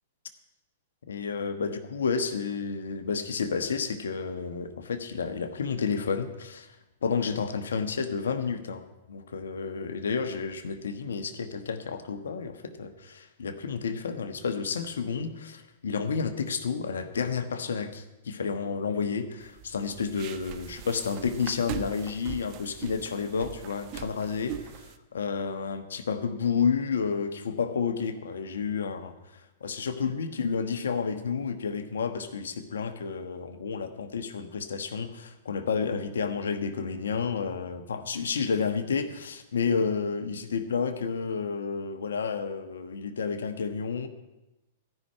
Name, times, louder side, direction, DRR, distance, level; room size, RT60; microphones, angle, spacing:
voice 1, 1.1-6.7 7.0-8.8 9.1-29.1 29.6-44.1, left 5 dB, 80° left, 9 dB, 1.2 m, -31 dB
sound 1, 19.4-25.0, right 10 dB, 45° right, 0.9 m, -41 dB
14.0 x 5.9 x 9.8 m, 0.98 s
hypercardioid pair, 115°, 0 cm